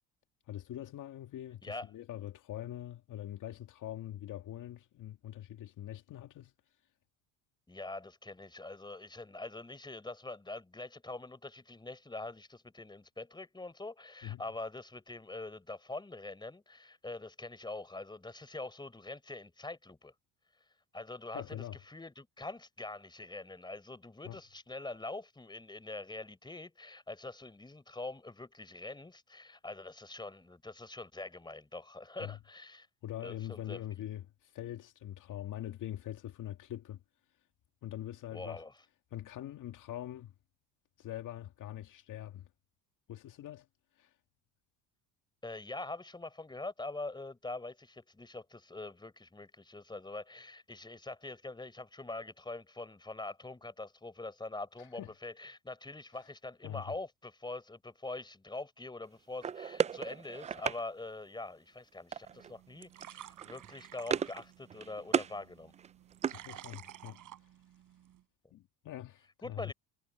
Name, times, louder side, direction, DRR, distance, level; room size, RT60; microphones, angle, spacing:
voice 1, 0.5-6.5 14.2-14.4 21.3-21.8 24.2-24.4 32.2-32.4 33.0-37.0 37.8-38.6 39.1-40.3 41.0-42.5 43.1-43.7 44.0-44.1 54.8-55.1 56.6-56.9 66.3-67.5 68.5-69.7, left 12 dB, 55° left, 2.1 m, -43 dB
voice 2, 7.7-20.1 20.9-32.9 33.2-33.8 38.3-38.7 45.4-65.7 69.4-69.7, left 2 dB, 10° left, 4.4 m, -44 dB
sound 1, 59.4-60.8 62.1-62.5 62.8-63.1 63.4-64.4 64.7-65.3 65.7-67.0, right 7 dB, 20° right, 0.4 m, -35 dB
sound 2, 62.3-68.2, right 12 dB, 55° right, 6.6 m, -53 dB
supercardioid pair, 100°, 38 cm